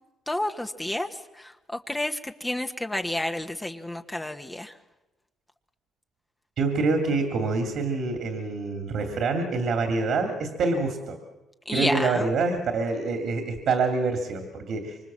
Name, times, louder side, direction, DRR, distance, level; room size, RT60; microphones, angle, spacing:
voice 1, 0.3-4.7 11.6-12.3, left 1 dB, 10° left, 6 dB, 1.3 m, -30 dB
voice 2, 6.6-11.2 11.7-15.0, right 3 dB, 65° right, 5 dB, 2.6 m, -26 dB
25.0 x 24.5 x 7.5 m, 1.1 s
cardioid pair, 90°, 0 cm